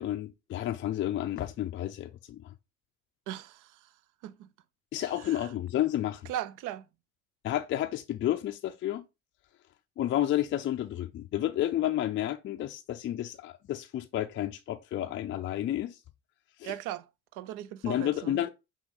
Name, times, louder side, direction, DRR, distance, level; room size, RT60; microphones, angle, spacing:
voice 1, 0.0-2.5 4.9-6.3 7.4-9.0 10.0-16.0 16.6-16.7 17.8-18.5, left 12 dB, 30° left, 0.4 m, -31 dB
voice 2, 3.3-3.9 4.2-4.5 5.2-5.5 6.3-6.9 16.6-17.1 17.3-18.4, right 12 dB, 55° right, 0.5 m, -38 dB
5.7 x 2.3 x 3.7 m
figure-of-eight pair, 55°, 39 cm